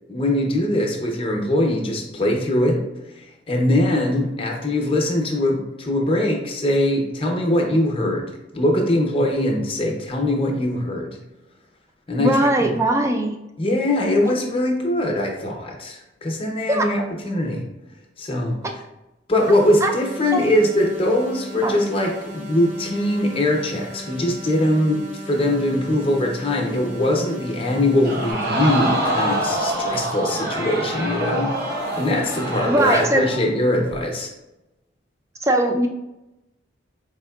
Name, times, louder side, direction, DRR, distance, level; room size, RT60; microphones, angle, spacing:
voice 1, 0.1-2.8 3.1-11.2 12.1-12.7 13.6-17.6 18.2-18.6 19.3-34.3, left 1 dB, 30° left, 1 dB, 0.6 m, -22 dB
voice 2, 12.2-13.4 16.7-16.9 19.8-19.9 20.3-20.5 21.6-21.7 32.7-33.2 35.4-35.9, right 1 dB, 15° right, 4 dB, 0.4 m, -20 dB
sound 1, 19.3-28.3, equal, 80° right, 1.5 m, -37 dB
Crowd, 28.0-33.5 33.9-34.0, right 1 dB, 55° right, 0.7 m, -25 dB
4.5 x 3.6 x 2.3 m, 0.95 s
head